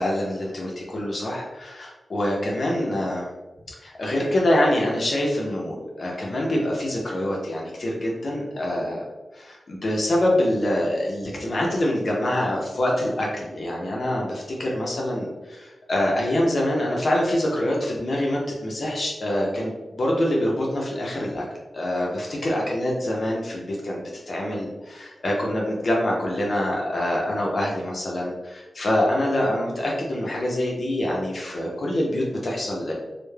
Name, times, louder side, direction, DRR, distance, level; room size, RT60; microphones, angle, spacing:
voice 1, 0.0-3.3 3.8-9.0 9.3-21.4 21.7-32.9, left 1 dB, 50° left, -3 dB, 0.4 m, -25 dB
2.2 x 2.0 x 3.1 m, 1.1 s
wide cardioid pair, 150°, 0 cm